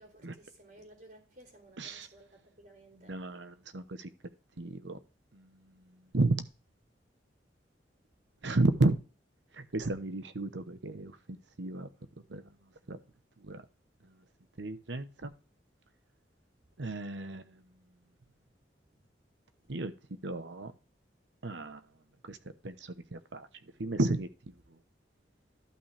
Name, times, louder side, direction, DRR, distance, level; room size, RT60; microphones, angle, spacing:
voice 1, 0.0-3.1, right 1 dB, 55° right, 3.2 m, -56 dB
voice 2, 3.1-4.1 4.6-5.0 5.3-5.5 6.1-6.4 8.4-9.0 9.7-11.9 12.3-12.4 12.9-13.0 13.4-13.6 14.6-15.3 16.8-17.4 19.7-19.9 20.2-20.7 21.4-21.8 22.3-22.4 22.6-23.5 23.8-24.3, right 2 dB, 90° right, 0.9 m, -32 dB
12.0 x 5.7 x 3.4 m
head